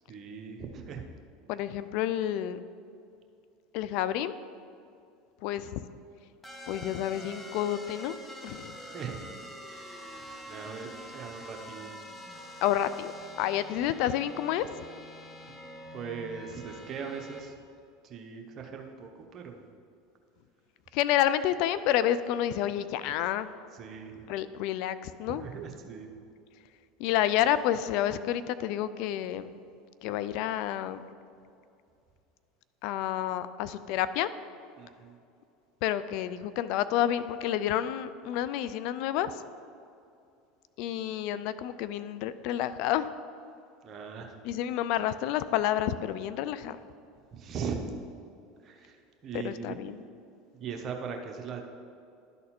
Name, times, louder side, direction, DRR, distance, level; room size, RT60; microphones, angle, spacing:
voice 1, 0.1-1.0 8.8-9.2 9.7-10.0 10.5-11.9 15.5-15.6 15.9-17.5 18.0-19.6 23.8-24.1 25.3-26.1 34.8-35.1 43.8-44.3 47.3-47.8 48.6-49.0 49.2-49.8 50.5-51.6, right 6 dB, 40° right, 3 dB, 1.1 m, -39 dB
voice 2, 1.5-2.6 3.7-4.4 5.4-5.8 6.7-8.1 8.4-8.7 12.6-13.1 13.4-14.7 20.9-23.5 24.3-25.4 27.0-29.5 30.0-31.0 32.8-34.3 35.8-39.4 40.8-43.1 44.4-46.8 49.3-50.0, left 11 dB, 60° left, 14 dB, 0.3 m, -29 dB
sound 1, 6.4-17.4, equal, 10° left, 1.0 m, -46 dB
12.0 x 4.2 x 4.3 m, 2.5 s
hypercardioid pair, 80°, 0 cm